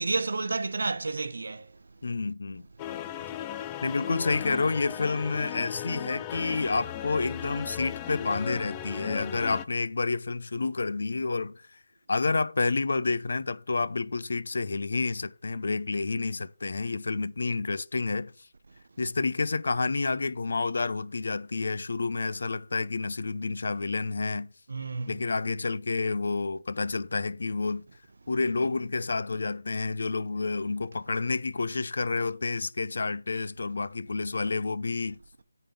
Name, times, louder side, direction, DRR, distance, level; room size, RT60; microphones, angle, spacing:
voice 1, 0.0-1.8 3.0-3.1 24.7-25.2, right 3 dB, 65° right, 0.9 m, -31 dB
voice 2, 2.0-2.7 3.8-11.8 12.1-18.3 19.0-24.5 25.1-27.8 28.3-35.2, left 3 dB, 60° left, 0.6 m, -29 dB
sound 1, 2.8-9.6, left 11 dB, 15° left, 0.3 m, -37 dB
9.0 x 3.9 x 7.0 m
figure-of-eight pair, 170°, 0 cm